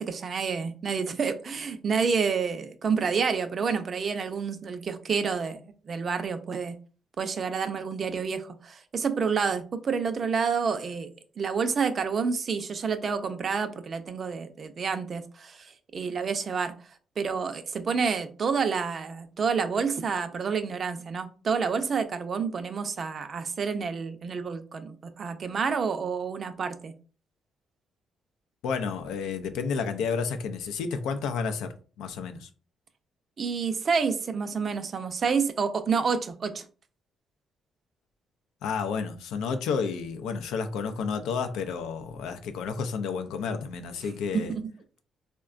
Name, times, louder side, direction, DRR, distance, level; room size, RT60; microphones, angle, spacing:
voice 1, 0.0-6.8 7.2-11.1 11.4-16.7 17.2-26.9 33.4-36.6 44.3-44.7, right 5 dB, 45° right, 0.4 m, -29 dB
voice 2, 28.6-32.5 38.6-44.5, left 5 dB, 90° left, 0.4 m, -31 dB
3.6 x 2.1 x 2.4 m
cardioid pair, 90°, 0 cm